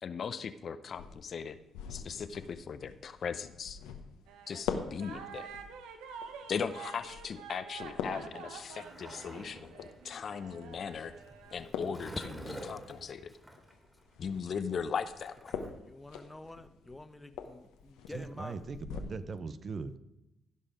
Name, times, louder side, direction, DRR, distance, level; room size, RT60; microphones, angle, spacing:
voice 1, 0.0-1.6 1.9-3.8 4.5-5.5 6.5-11.1 11.5-12.3 12.7-13.3 14.2-15.6, left 6 dB, 55° left, 12 dB, 0.6 m, -38 dB
sound 1, 0.9-19.0, left 7 dB, 80° left, 1.0 m, -45 dB
sound 2, 4.3-4.7 5.0-11.6, right 6 dB, 80° right, 0.9 m, -48 dB
Skateboard, 8.2-15.7, right 1 dB, 15° right, 2.9 m, -49 dB
voice 2, 15.5-18.7, left 2 dB, 15° left, 10 dB, 1.0 m, -48 dB
voice 3, 18.1-19.9, right 4 dB, 50° right, 13 dB, 0.7 m, -40 dB
15.0 x 5.5 x 5.0 m, 0.95 s
hypercardioid pair, 50°, 0 cm